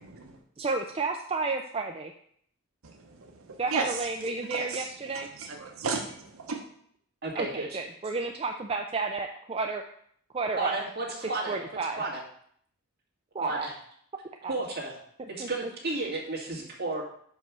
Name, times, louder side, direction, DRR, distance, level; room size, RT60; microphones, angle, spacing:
voice 1, 0.6-2.1 3.6-5.3 7.3-9.8 10.3-10.8 11.2-12.0 13.3-13.7 14.4-14.5 15.4-15.5, right 3 dB, 25° right, 3 dB, 0.4 m, -31 dB
voice 2, 4.5-4.8 5.1-6.6, right 4 dB, 80° right, 2 dB, 0.9 m, -33 dB
voice 3, 7.2-7.8 10.6-11.6 12.0-12.2 13.4-13.7 14.5-14.9 15.3-17.0, right 2 dB, 45° right, -4 dB, 2.0 m, -32 dB
5.4 x 5.4 x 6.0 m, 0.65 s
head